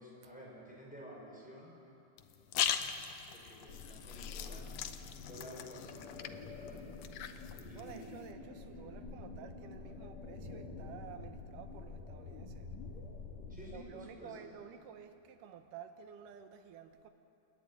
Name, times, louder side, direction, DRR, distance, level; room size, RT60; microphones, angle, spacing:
voice 1, 0.0-1.8 3.3-6.8 7.5-8.2 13.5-14.4, equal, ahead, -4 dB, 4.9 m, -52 dB
sound 1, 2.2-8.3, left 9 dB, 80° left, 1.4 m, -40 dB
sound 2, 3.7-13.8, left 3 dB, 55° left, 3.2 m, -48 dB
voice 2, 7.7-12.8 13.7-17.1, right 8 dB, 75° right, 8 dB, 2.5 m, -52 dB
29.0 x 11.5 x 9.5 m, 2.8 s
omnidirectional pair, 3.9 m